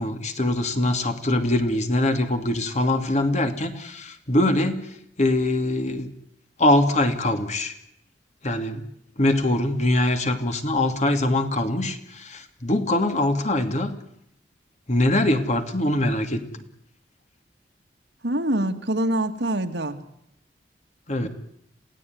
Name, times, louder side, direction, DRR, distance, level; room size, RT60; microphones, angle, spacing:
voice 1, 0.0-4.9 5.2-6.1 6.6-7.7 8.4-8.9 9.2-13.9 14.9-16.6 21.1-21.3, left 1 dB, 45° left, 7 dB, 2.7 m, -23 dB
voice 2, 18.2-20.0 21.2-21.3, right 1 dB, 85° right, 6 dB, 2.4 m, -25 dB
28.0 x 17.0 x 9.6 m, 0.77 s
head